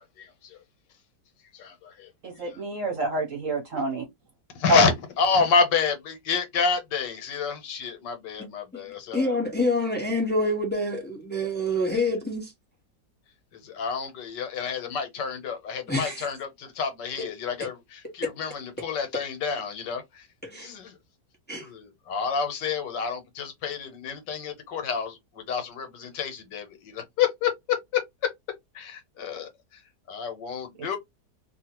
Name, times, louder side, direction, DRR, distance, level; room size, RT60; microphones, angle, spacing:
voice 1, 0.2-0.6 1.5-2.1 4.6-4.9 5.2-9.3 13.6-20.2 20.5-20.9 21.5-28.0 28.7-29.5 30.1-31.0, left 5 dB, 85° left, 1.5 m, -29 dB
voice 2, 2.2-4.0 4.7-4.8, right 1 dB, 55° right, 1.0 m, -26 dB
voice 3, 8.4-8.8 9.1-12.5 15.9-16.2 17.2-17.3 18.2-18.3 20.5-20.7 21.5-21.6, left 1 dB, 15° left, 0.4 m, -27 dB
2.8 x 2.7 x 2.9 m
omnidirectional pair, 1.9 m